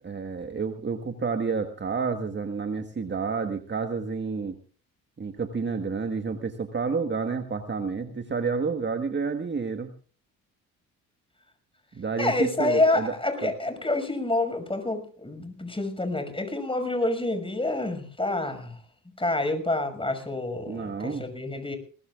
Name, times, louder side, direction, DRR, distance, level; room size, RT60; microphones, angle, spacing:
voice 1, 0.0-4.6 5.2-9.9 11.9-13.2 13.4-13.5 20.7-21.3, right 5 dB, 25° right, 7 dB, 1.5 m, -30 dB
voice 2, 12.2-18.8 19.2-21.8, left 2 dB, 15° left, 6 dB, 5.9 m, -27 dB
21.5 x 19.0 x 2.5 m, 0.41 s
hypercardioid pair, 55°, 42 cm